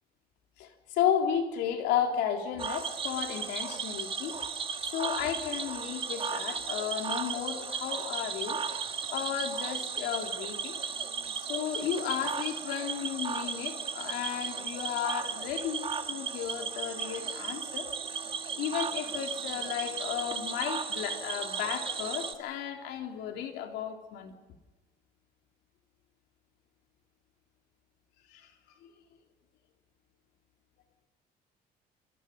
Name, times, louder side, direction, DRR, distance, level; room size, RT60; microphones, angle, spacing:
voice 1, 0.6-4.4 4.9-8.6 9.1-10.8 11.4-17.9 18.5-24.3 28.3-28.5 28.8-28.9, left 9 dB, 90° left, 3.5 m, -33 dB
Cricket / Frog, 2.6-22.3, right 6 dB, 30° right, 2.0 m, -35 dB
27.0 x 25.5 x 5.4 m
cardioid pair, 110°, 17 cm